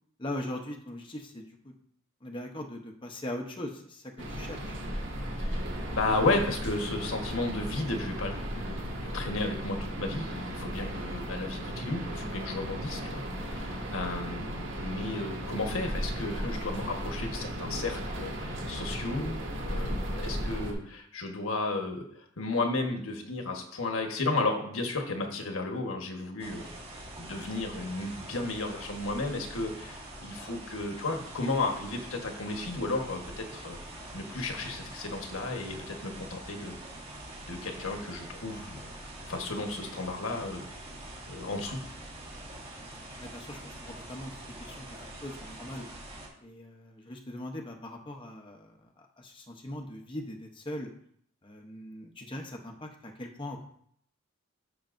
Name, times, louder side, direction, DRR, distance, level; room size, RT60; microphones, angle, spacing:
voice 1, 0.2-1.7 2.2-4.8 11.0-11.1 43.2-45.9 46.4-50.9 51.4-53.6, left 1 dB, 25° left, 1 dB, 0.9 m, -41 dB
sound 1, 4.2-20.7, equal, 65° right, 1.8 m, -35 dB
voice 2, 5.9-26.7 27.1-33.8 34.1-36.8 37.5-38.9 39.3-40.7 41.3-41.8, left 2 dB, 85° left, 3 dB, 1.4 m, -33 dB
sound 2, 26.4-46.3, right 1 dB, 30° right, 2.1 m, -44 dB
11.5 x 6.7 x 2.6 m, 0.66 s
head